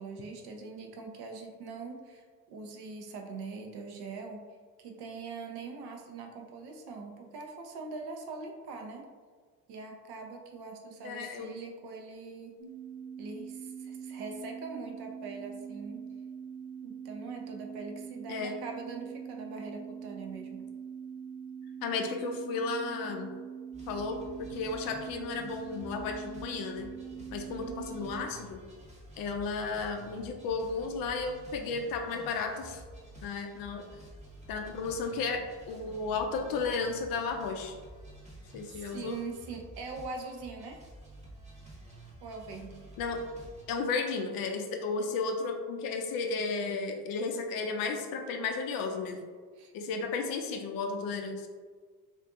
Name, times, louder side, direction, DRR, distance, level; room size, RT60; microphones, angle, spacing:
voice 1, 0.0-4.4 4.8-9.1 9.7-12.6 13.2-16.1 16.8-20.6 27.5-27.9 38.7-40.8 42.2-42.9 49.6-49.7, right 4 dB, 55° right, 2 dB, 0.6 m, -42 dB
voice 2, 11.0-11.6 18.3-18.5 21.8-23.3 23.9-26.9 27.3-28.6 29.2-32.8 33.2-33.9 34.5-37.7 38.5-39.2 43.0-43.2 43.7-49.2 49.7-51.5, left 4 dB, 50° left, 4 dB, 0.4 m, -33 dB
sound 1, 12.6-28.2, right 7 dB, 90° right, 1.0 m, -43 dB
sound 2, 23.7-43.6, right 1 dB, 15° right, 0.8 m, -51 dB
2.5 x 2.5 x 2.4 m, 1.6 s
hypercardioid pair, 55°, 47 cm